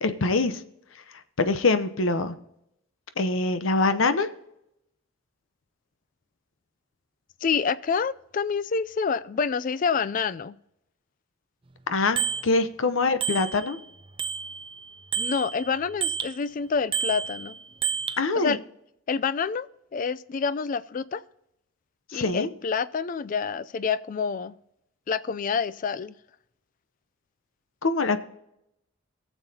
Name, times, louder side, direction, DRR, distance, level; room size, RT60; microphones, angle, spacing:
voice 1, 0.0-0.6 1.4-2.3 3.2-4.3 11.9-13.8 18.2-18.6 22.1-22.5 27.8-28.2, left 3 dB, 70° left, 0.8 m, -24 dB
voice 2, 7.4-10.6 15.2-17.5 18.4-18.6 19.1-19.7 19.9-21.2 22.1-24.5 25.1-26.1, left 5 dB, 40° left, 0.3 m, -27 dB
Bicycle bell, 12.2-12.5 13.2-13.8 14.2-16.4 16.9-18.2, right 7 dB, 25° right, 0.4 m, -30 dB
18.5 x 7.1 x 2.8 m
head